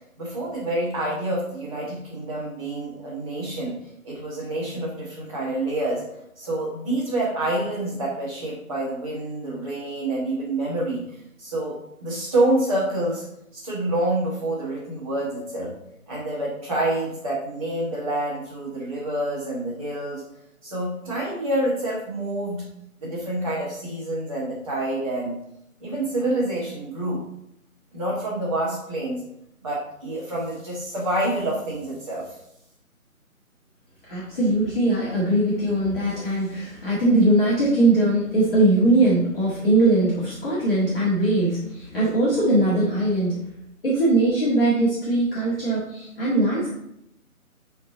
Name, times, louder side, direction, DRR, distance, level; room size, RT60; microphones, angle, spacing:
voice 1, 0.2-3.8 4.0-6.0 6.3-11.0 11.4-11.7 12.0-13.2 13.5-15.7 16.1-20.2 20.6-22.6 23.0-25.4 25.8-27.2 27.9-29.2 29.6-32.3, right 1 dB, 25° right, -8 dB, 1.3 m, -27 dB
voice 2, 34.1-43.4 43.8-46.7, right 2 dB, 40° left, -8 dB, 2.1 m, -21 dB
8.0 x 4.1 x 4.0 m, 0.79 s
figure-of-eight pair, 155°, 43 cm